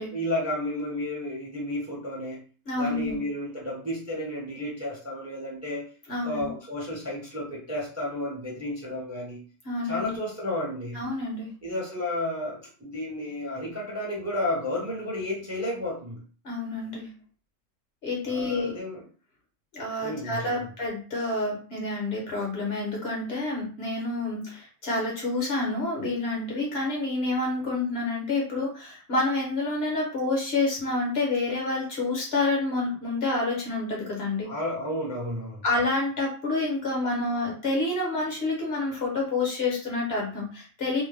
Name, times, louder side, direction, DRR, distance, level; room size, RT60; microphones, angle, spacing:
voice 1, 0.1-2.4 2.8-5.9 6.2-9.4 9.8-11.0 11.6-16.2 18.3-19.0 20.0-20.7 34.4-35.6, left 1 dB, 15° right, -4 dB, 0.8 m, -32 dB
voice 2, 2.7-3.2 6.1-6.5 9.6-10.1 10.9-11.5 16.4-17.1 18.0-18.7 19.7-34.5 35.6-41.0, left 2 dB, 55° left, -1 dB, 1.1 m, -28 dB
2.7 x 2.1 x 3.2 m, 0.39 s
omnidirectional pair, 1.3 m